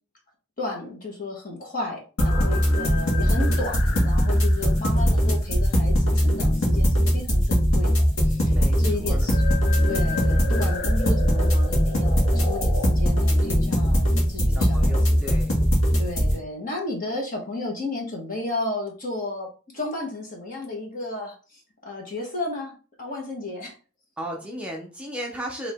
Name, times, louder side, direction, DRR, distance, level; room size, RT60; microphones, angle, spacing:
voice 1, 0.6-9.4 9.9-15.2 16.0-23.8, left 2 dB, 40° left, 0 dB, 1.3 m, -33 dB
sound 1, 2.2-16.3, equal, 80° left, 1.5 m, -21 dB
voice 2, 8.5-9.3 14.5-15.5 24.2-25.7, equal, 5° right, -2 dB, 0.6 m, -35 dB
4.7 x 2.8 x 3.5 m, 0.37 s
head